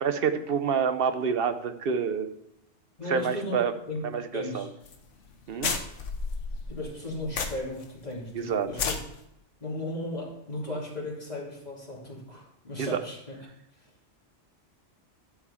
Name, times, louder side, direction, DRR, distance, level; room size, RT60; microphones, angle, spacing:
voice 1, 0.0-2.3 3.1-3.7 4.0-4.7 5.5-5.7 8.3-8.7 12.8-13.0, right 7 dB, 55° right, 9 dB, 0.9 m, -27 dB
voice 2, 3.0-3.6 3.9-4.0 4.3-4.7 6.7-9.0 9.6-13.3 13.8-13.9, left 2 dB, 35° left, -4 dB, 2.9 m, -36 dB
sound 1, 4.8-5.0 5.3-5.4 5.6-7.8 8.2-8.3 8.7-9.0, left 5 dB, 85° left, 1.3 m, -31 dB
11.5 x 4.5 x 5.7 m, 0.81 s
omnidirectional pair, 1.2 m